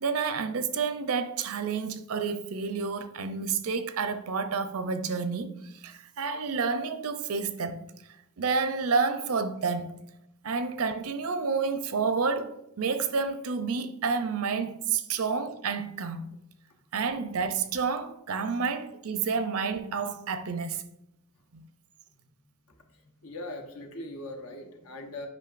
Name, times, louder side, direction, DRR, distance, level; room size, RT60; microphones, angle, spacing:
voice 1, 0.0-7.8 8.4-9.9 10.4-16.3 16.9-20.9 21.5-21.7, right 5 dB, 70° right, 0.6 m, -29 dB
voice 2, 22.9-25.3, left 1 dB, 75° left, 1.0 m, -41 dB
8.3 x 5.3 x 2.5 m
head